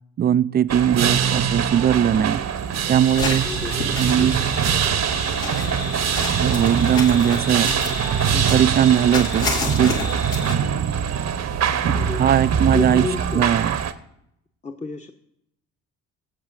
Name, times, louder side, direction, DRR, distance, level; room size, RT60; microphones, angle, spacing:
voice 1, 0.2-2.4 2.9-3.5 4.0-4.4 6.3-7.7 8.5-9.5 9.8-10.0 11.8-13.1 13.3-13.8, right 9 dB, 25° right, 0.3 m, -19 dB
sound 1, 0.7-13.9, right 7 dB, 40° right, 0.9 m, -23 dB
sound 2, 2.6-12.8, right 9 dB, 75° right, 0.9 m, -39 dB
sound 3, 3.0-10.6, left 3 dB, 80° left, 2.0 m, -30 dB
voice 2, 3.4-3.9 4.1-4.6 8.3-8.5 11.9-12.2 12.7-13.4 14.6-15.1, left 2 dB, 15° left, 0.9 m, -30 dB
22.5 x 7.9 x 2.6 m
hypercardioid pair, 50°, 40 cm